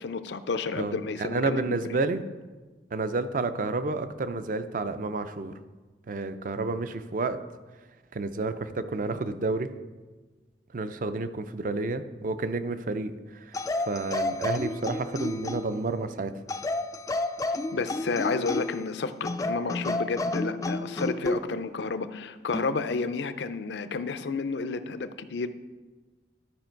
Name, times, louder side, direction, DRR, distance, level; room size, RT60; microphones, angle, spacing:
voice 1, 0.0-2.0 17.7-25.5, left 4 dB, 75° left, 11 dB, 0.5 m, -31 dB
voice 2, 0.8-2.2 2.9-5.5 6.1-7.4 8.1-9.7 10.7-13.6 13.9-16.3, right 3 dB, 45° right, 11 dB, 0.4 m, -30 dB
sound 1, 13.5-15.8 16.5-18.8 19.2-21.4 22.5-22.8, left 2 dB, 20° left, 0.3 m, -31 dB
12.0 x 5.2 x 4.5 m, 1.3 s
head